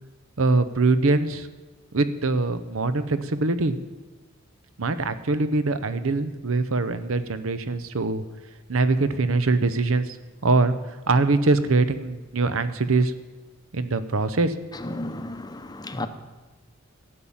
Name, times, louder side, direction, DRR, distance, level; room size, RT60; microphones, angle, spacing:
voice 1, 0.4-1.5 1.9-3.7 4.8-8.2 8.7-10.1 10.4-10.7 11.1-13.1 13.7-14.5, right 3 dB, 70° right, 0.8 m, -23 dB
voice 2, 14.7-16.1, left 2 dB, 20° left, 0.7 m, -33 dB
12.5 x 8.7 x 7.2 m
head